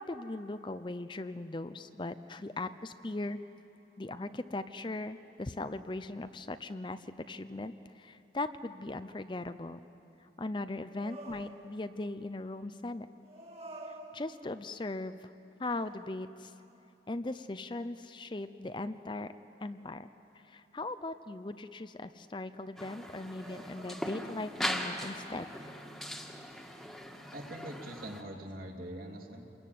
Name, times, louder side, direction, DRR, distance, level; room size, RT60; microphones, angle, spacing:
voice 1, 0.0-3.4 4.0-9.8 10.2-13.1 14.1-15.3 15.6-16.5 17.1-19.3 19.6-20.1 20.4-25.5, left 2 dB, 25° left, 11 dB, 0.5 m, -39 dB
sound 1, 10.9-12.0 13.2-14.8 15.7-16.7 17.3-17.5 23.3-24.5, right 1 dB, 35° right, 2.4 m, -50 dB
sound 2, 22.8-28.2, equal, ahead, 1.7 m, -40 dB
voice 2, 27.3-29.5, right 1 dB, 50° right, 1 dB, 2.8 m, -43 dB
28.0 x 22.0 x 9.3 m, 2.9 s
head